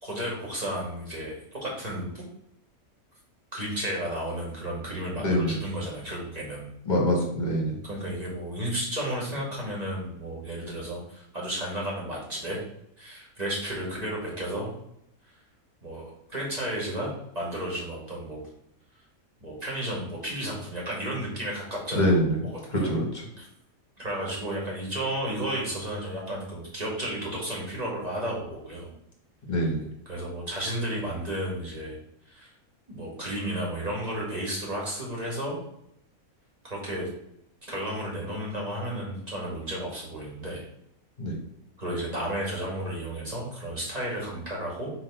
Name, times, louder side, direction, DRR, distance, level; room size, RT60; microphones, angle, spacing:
voice 1, 0.0-2.2 3.5-6.7 7.8-12.6 13.0-14.7 15.3-15.4 15.8-18.4 19.4-22.2 22.4-22.9 23.4-23.5 24.0-28.9 30.1-32.0 32.3-32.5 32.9-35.6 36.6-37.1 37.7-40.6 41.8-44.9, right 1 dB, 25° right, -4 dB, 2.2 m, -33 dB
voice 2, 5.2-5.6 6.8-7.8 21.9-22.4 22.7-23.2 29.5-29.9 41.2-41.4, equal, 30° left, -1 dB, 1.4 m, -25 dB
4.6 x 3.9 x 5.6 m, 0.77 s
omnidirectional pair, 1.5 m